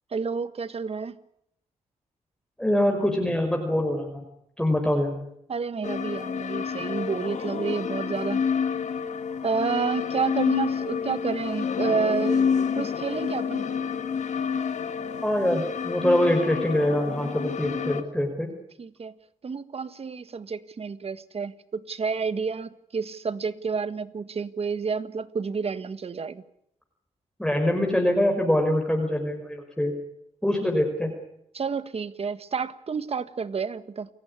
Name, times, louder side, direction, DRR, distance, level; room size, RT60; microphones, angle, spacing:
voice 1, 0.1-1.1 5.5-8.4 9.4-12.5 12.7-13.6 18.8-19.1 19.4-26.4 31.5-34.1, right 5 dB, 50° right, 13 dB, 1.5 m, -30 dB
voice 2, 2.6-4.2 4.6-5.2 15.2-18.5 27.4-29.9 30.4-31.1, left 1 dB, 5° left, 2 dB, 5.1 m, -24 dB
sound 1, 5.8-18.0, left 6 dB, 60° left, 2.0 m, -28 dB
28.5 x 15.5 x 9.9 m, 0.77 s
cardioid pair, 65°, 14 cm